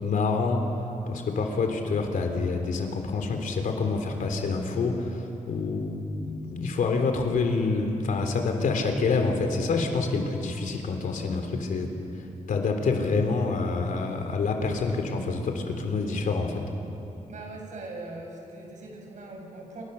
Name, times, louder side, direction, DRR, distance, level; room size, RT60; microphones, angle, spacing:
voice 1, 0.0-11.9 12.5-16.6, left 4 dB, 85° left, 4 dB, 3.5 m, -27 dB
voice 2, 17.3-19.8, right 2 dB, 70° right, 1 dB, 7.0 m, -41 dB
28.5 x 25.0 x 7.0 m, 2.9 s
wide cardioid pair, 115°, 13 cm